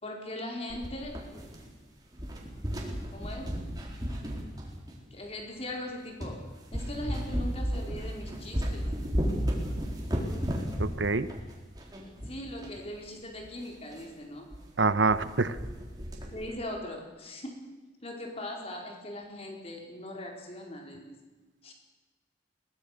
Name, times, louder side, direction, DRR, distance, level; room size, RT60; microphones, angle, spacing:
voice 1, 0.0-1.3 3.1-3.6 5.1-6.5 6.7-8.9 12.3-14.5 16.3-17.7 18.0-21.1 21.6-21.7, left 1 dB, 35° left, 1 dB, 4.5 m, -40 dB
sound 1, 0.7-1.8 2.1-5.1 5.7-5.8 6.2-6.4 6.7-12.8 13.1-13.2 13.4-13.5 13.9-14.1 14.5-14.6 14.9-15.3 15.6-16.5, equal, 20° right, 4.3 m, -34 dB
voice 2, 10.8-11.3 14.8-15.5, right 3 dB, 80° right, 14 dB, 1.1 m, -25 dB
22.5 x 19.5 x 6.7 m, 1.3 s
head